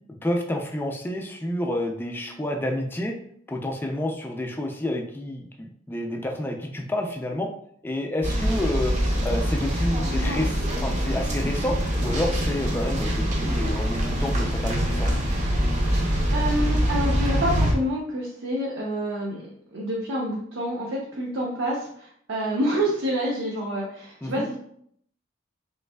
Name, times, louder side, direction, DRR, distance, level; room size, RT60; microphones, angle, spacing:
voice 1, 0.2-3.1 3.5-7.5 7.8-8.9 9.2-15.1 24.2-24.5, left 1 dB, 10° left, 2 dB, 0.4 m, -29 dB
sound 1, 8.2-17.7, equal, 40° right, 0.6 m, -24 dB
voice 2, 15.9-24.6, equal, 80° right, -4 dB, 0.7 m, -28 dB
3.4 x 3.1 x 2.2 m, 0.67 s
head